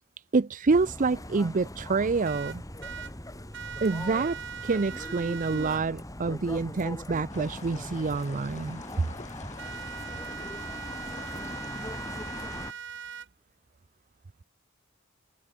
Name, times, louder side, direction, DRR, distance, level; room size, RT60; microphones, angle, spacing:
voice 1, 0.3-2.6 3.8-4.4 4.6-8.8, right 4 dB, 40° right, 0.5 m, -27 dB
sound 1, 0.7-12.7, left 1 dB, 15° left, 7.6 m, -40 dB
sound 2, 2.2-3.1 3.5-5.8 9.6-13.3, right 7 dB, 60° right, 3.2 m, -40 dB
sound 3, 7.3-12.7, left 4 dB, 35° left, 4.8 m, -48 dB
head